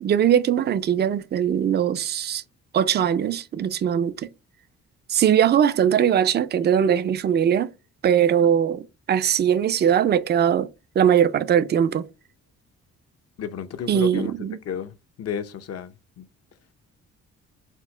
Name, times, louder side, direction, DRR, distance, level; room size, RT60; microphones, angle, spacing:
voice 1, 0.0-2.4 2.7-4.3 5.1-7.7 8.0-10.7 11.0-12.1 13.9-14.6, right 9 dB, 35° right, 0.4 m, -20 dB
voice 2, 13.4-14.3 14.7-14.9 15.2-16.2, left 7 dB, 55° left, 0.6 m, -32 dB
4.4 x 2.0 x 4.3 m
cardioid pair, 90°, 30 cm